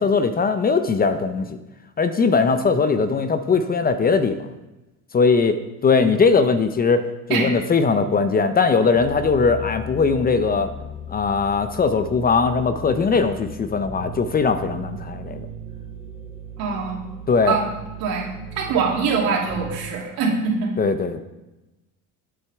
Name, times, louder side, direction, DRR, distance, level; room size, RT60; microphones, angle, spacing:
voice 1, 0.0-1.6 2.0-4.5 5.1-10.7 11.1-15.5 17.3-17.6 20.8-21.2, left 4 dB, 25° left, 10 dB, 0.6 m, -20 dB
sound 1, 8.9-19.8, equal, ahead, 3.2 m, -37 dB
voice 2, 16.6-17.0 17.5-17.7 18.0-18.3 18.6-20.7, right 5 dB, 75° right, -3 dB, 2.8 m, -23 dB
8.7 x 7.8 x 3.5 m, 1.0 s
cardioid pair, 110°, 36 cm